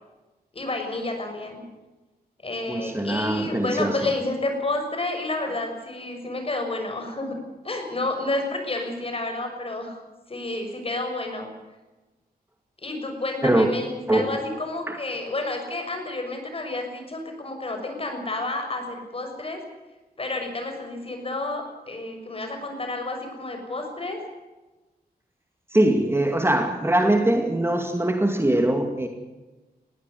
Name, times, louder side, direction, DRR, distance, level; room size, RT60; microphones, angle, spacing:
voice 1, 0.5-1.6 2.4-7.4 7.6-10.0 10.3-11.5 12.8-19.6 20.2-24.2, left 2 dB, 35° left, 4 dB, 6.4 m, -30 dB
voice 2, 2.7-4.1 13.4-13.7 14.1-14.4 14.9-15.0 25.7-29.1, right 1 dB, 15° right, 5 dB, 2.3 m, -22 dB
20.5 x 17.0 x 9.5 m, 1.1 s
wide cardioid pair, 140°, 16 cm